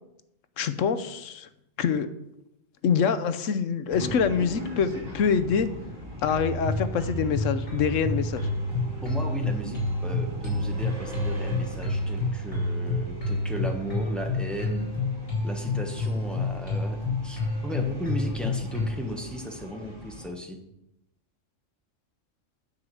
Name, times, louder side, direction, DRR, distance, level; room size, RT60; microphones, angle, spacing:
voice 1, 0.6-1.5 1.8-2.1 2.8-5.7 6.2-8.5, left 6 dB, 75° left, 12 dB, 1.1 m, -25 dB
sound 1, 3.9-20.3, equal, 70° right, 2.8 m, -42 dB
sound 2, 6.2-18.9, left 2 dB, 45° left, 4.3 m, -29 dB
voice 2, 9.0-14.9 15.4-20.6, equal, ahead, 2 dB, 1.1 m, -35 dB
9.6 x 4.8 x 7.7 m, 0.84 s
omnidirectional pair, 1.3 m